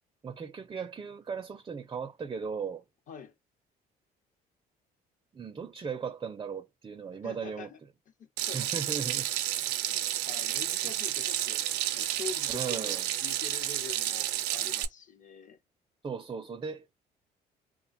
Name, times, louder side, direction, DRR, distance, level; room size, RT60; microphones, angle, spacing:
voice 1, 0.2-2.8 5.3-7.7 8.4-9.3 12.5-13.1 16.0-16.9, right 6 dB, 25° right, 0.4 m, -37 dB
voice 2, 7.2-7.8 8.5-8.6 9.9-15.6, left 6 dB, 50° left, 0.8 m, -45 dB
Water tap faucet / Sink (filling or washing), 8.4-14.8, right 13 dB, 90° right, 0.4 m, -31 dB
2.4 x 2.2 x 2.5 m
cardioid pair, 110°, 17 cm